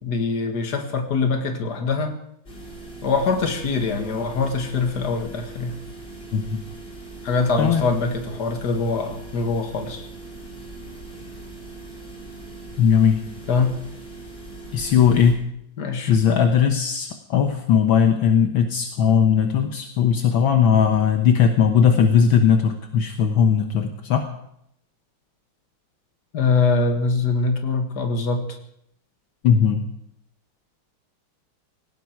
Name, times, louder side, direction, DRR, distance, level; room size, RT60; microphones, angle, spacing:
voice 1, 0.0-2.1 3.0-5.8 7.2-10.1 13.5-13.8 15.8-16.2 26.3-28.4, left 4 dB, 50° left, 5 dB, 2.3 m, -23 dB
sound 1, 2.5-15.3, right 2 dB, 25° left, 3.9 m, -40 dB
voice 2, 12.8-13.2 14.7-15.4 16.1-24.3 29.4-29.9, left 7 dB, 70° left, 5 dB, 1.9 m, -18 dB
18.0 x 16.5 x 4.7 m, 0.74 s
omnidirectional pair, 2.3 m